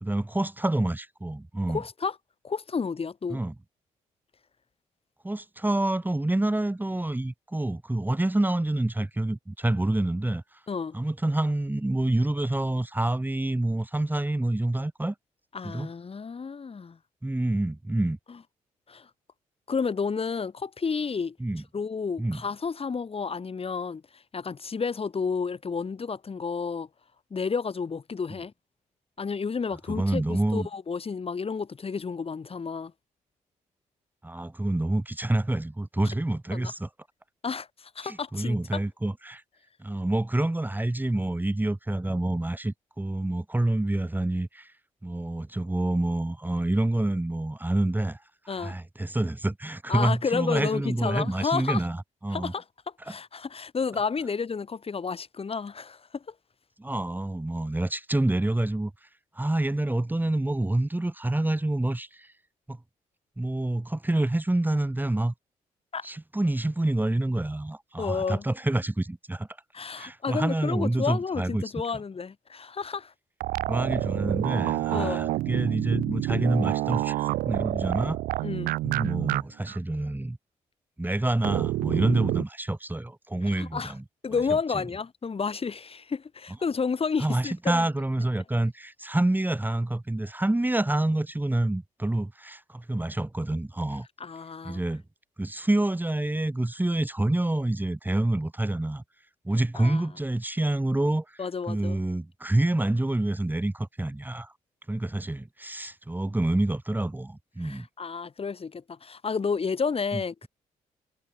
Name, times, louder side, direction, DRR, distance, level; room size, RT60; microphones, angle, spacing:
voice 1, 0.0-1.8 3.3-3.5 5.2-10.4 10.9-15.1 15.6-15.9 17.2-18.2 21.4-21.6 22.2-22.4 29.9-30.7 34.2-36.9 38.0-39.4 39.8-44.7 45.0-52.5 53.1-53.2 56.8-58.9 59.3-62.3 62.7-62.8 63.4-65.3 66.0-69.5 69.9-71.6 73.7-78.2 78.8-80.4 81.0-84.0 84.7-84.8 87.2-94.1 94.6-95.0 95.4-99.0 99.4-104.5 104.9-107.9 110.1-110.5, right 1 dB, 15° right, 2.3 m, -27 dB
voice 2, 1.7-2.2 2.4-3.4 10.7-10.9 15.5-17.0 18.9-19.1 19.7-21.4 21.7-24.0 24.3-26.9 27.3-28.5 29.2-32.9 36.0-36.1 36.5-36.7 37.4-38.8 48.5-48.8 49.9-51.8 52.3-52.6 53.0-56.2 65.9-66.1 68.0-68.4 69.7-73.1 74.9-75.2 78.4-78.7 83.6-83.9 84.2-87.9 94.2-94.8 99.7-100.0 101.4-102.0 107.6-110.5, left 5 dB, 45° left, 3.0 m, -31 dB
sound 1, 73.4-79.4 79.7-79.8 81.4-82.4, right 17 dB, 85° right, 2.8 m, -28 dB
supercardioid pair, 55°, 14 cm